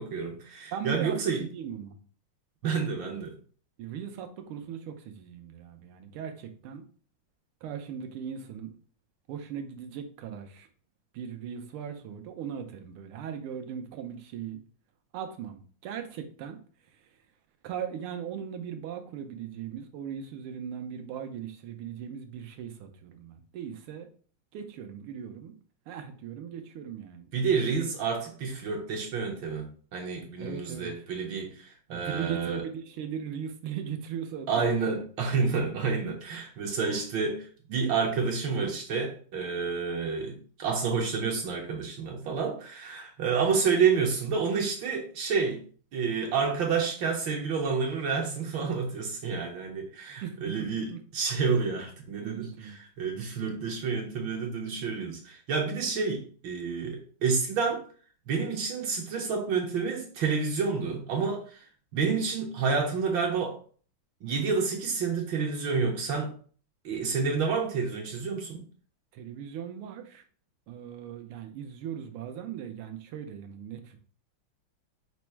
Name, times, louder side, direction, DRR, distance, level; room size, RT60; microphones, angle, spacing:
voice 1, 0.0-1.4 2.6-3.3 27.3-32.6 34.5-45.6 45.9-50.9 51.1-57.8 58.3-61.7 61.9-63.6 64.2-66.3 66.8-68.6, right 5 dB, 70° right, 1.4 m, -29 dB
voice 2, 0.7-2.0 3.8-6.8 7.6-8.7 9.3-10.7 11.1-14.6 15.1-16.6 17.6-24.1 24.5-25.5 25.9-27.3 30.4-30.9 31.9-34.7 34.9-35.0 50.2-51.0 52.2-52.8 69.1-70.2 70.7-74.0, right 8 dB, 85° right, 1.6 m, -38 dB
5.3 x 2.0 x 4.5 m
omnidirectional pair, 2.3 m